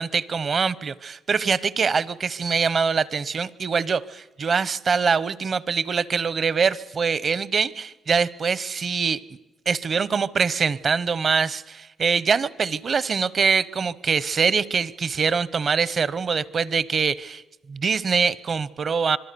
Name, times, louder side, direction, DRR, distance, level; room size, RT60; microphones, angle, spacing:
voice 1, 0.0-9.2 9.7-17.4 17.7-19.2, right 5 dB, 50° right, 20 dB, 0.8 m, -24 dB
26.0 x 22.0 x 6.9 m, 1.0 s
cardioid pair, 65°, 0 cm